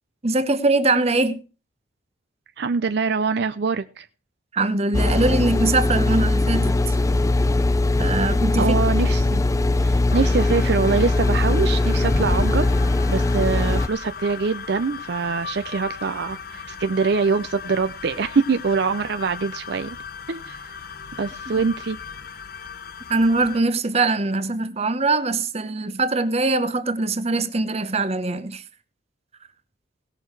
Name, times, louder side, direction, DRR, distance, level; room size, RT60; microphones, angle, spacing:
voice 1, 0.2-1.4 4.5-6.9 8.0-8.7 21.5-21.7 23.1-28.6, right 2 dB, 35° right, 0.9 m, -22 dB
voice 2, 2.6-4.1 8.6-9.4 9.8-12.7 13.1-20.0 20.3-20.8 21.2-22.0, right 5 dB, 60° right, 0.5 m, -24 dB
sound 1, 4.9-13.9, left 2 dB, 15° left, 0.5 m, -20 dB
sound 2, 10.1-23.6, left 6 dB, 50° left, 0.9 m, -38 dB
18.0 x 6.5 x 4.7 m
head